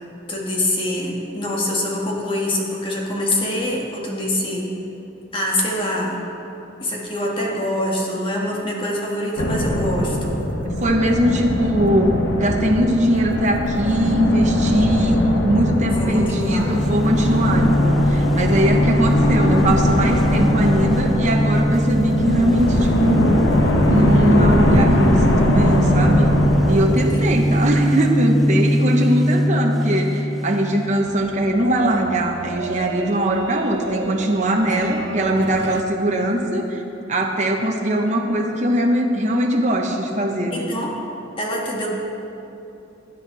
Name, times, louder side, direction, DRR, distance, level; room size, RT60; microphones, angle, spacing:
voice 1, 0.3-4.7 5.3-6.2 6.8-10.4 15.9-16.8 26.9-27.2 34.4-34.9 40.5-40.9 41.4-41.9, left 1 dB, 30° left, -3 dB, 1.8 m, -25 dB
sound 1, 9.4-27.8, left 1 dB, 90° left, 1.2 m, -20 dB
voice 2, 10.8-23.5 23.9-26.3 26.7-36.8 37.1-40.7, right 1 dB, 40° right, 1 dB, 1.0 m, -21 dB
sound 2, 16.5-31.1, equal, ahead, 0.4 m, -22 dB
sound 3, 30.9-35.8, right 3 dB, 65° right, 0.6 m, -33 dB
17.0 x 10.0 x 4.1 m, 2.9 s
head